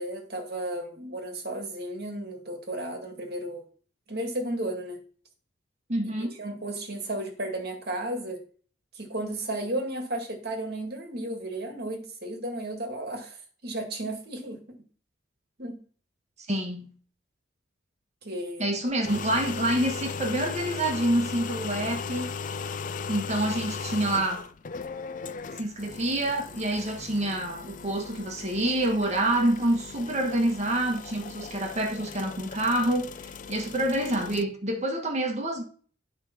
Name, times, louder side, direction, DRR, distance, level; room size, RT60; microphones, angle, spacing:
voice 1, 0.0-3.6 4.1-5.0 6.2-8.4 8.9-13.4 13.6-14.6 15.6-15.8 18.2-18.7, right 1 dB, 55° right, 2.1 m, -34 dB
voice 2, 5.9-6.3 16.4-16.9 18.6-22.3 23.1-24.4 25.6-35.6, right 1 dB, 35° right, 1.6 m, -27 dB
sound 1, 18.9-34.4, left 5 dB, 40° left, 0.4 m, -37 dB
9.6 x 5.0 x 5.8 m
head